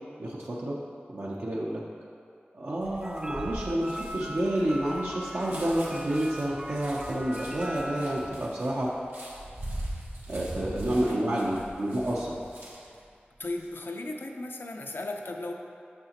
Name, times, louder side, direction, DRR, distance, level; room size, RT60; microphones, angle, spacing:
voice 1, 0.2-0.8 1.1-1.8 2.5-8.9 10.3-12.4, right 1 dB, 70° right, -5 dB, 0.6 m, -29 dB
sound 1, 2.8-13.0 13.4-13.7, right 1 dB, 90° right, 1.2 m, -41 dB
sound 2, 3.0-8.3, right 1 dB, 15° right, 0.3 m, -40 dB
voice 2, 13.4-15.5, left 2 dB, 70° left, 2 dB, 0.5 m, -36 dB
6.7 x 5.7 x 2.9 m, 2.4 s
wide cardioid pair, 40°, 4 cm